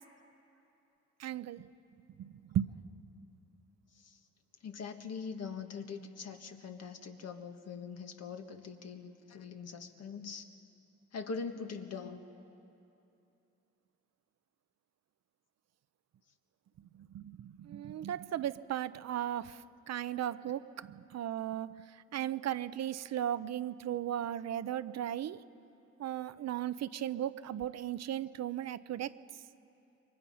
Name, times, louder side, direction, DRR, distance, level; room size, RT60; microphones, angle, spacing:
voice 1, 1.2-1.7 2.2-2.7 17.1-19.6 19.9-21.7 22.1-25.4 26.0-29.1, right 11 dB, 60° right, 14 dB, 0.7 m, -36 dB
voice 2, 4.6-10.5 11.1-12.2, left 5 dB, 55° left, 5 dB, 1.7 m, -42 dB
28.0 x 23.5 x 5.6 m, 2.8 s
cardioid pair, 90°, 30 cm